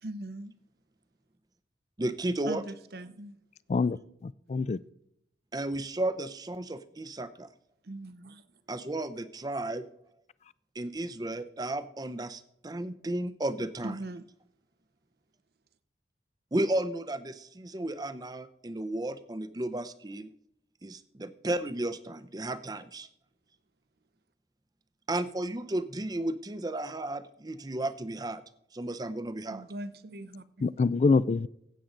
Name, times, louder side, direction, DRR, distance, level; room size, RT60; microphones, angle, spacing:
voice 1, 0.0-0.5 2.5-3.3 7.8-8.4 13.8-14.2 29.5-30.7, right 1 dB, 60° right, 0.7 m, -40 dB
voice 2, 2.0-2.6 5.5-7.5 8.7-9.9 10.7-14.0 16.5-20.3 20.8-23.1 25.1-28.4 28.7-29.6, right 1 dB, 20° right, 0.6 m, -33 dB
voice 3, 3.7-4.8 30.6-31.5, left 4 dB, 40° left, 0.3 m, -26 dB
15.0 x 8.5 x 3.8 m
head